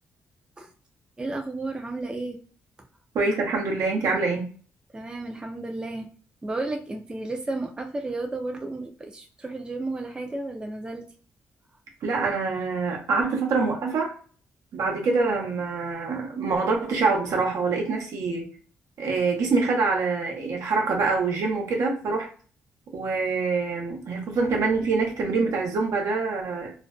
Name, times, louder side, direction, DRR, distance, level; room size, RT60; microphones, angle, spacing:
voice 1, 1.2-2.4 4.9-6.1 6.4-11.0, right 2 dB, 15° right, 2 dB, 0.4 m, -32 dB
voice 2, 3.1-4.4 12.0-14.1 14.7-18.5 19.0-22.3 22.9-26.7, right 4 dB, 75° right, 1 dB, 0.8 m, -25 dB
2.4 x 2.1 x 2.4 m, 0.41 s
cardioid pair, 95°, 5 cm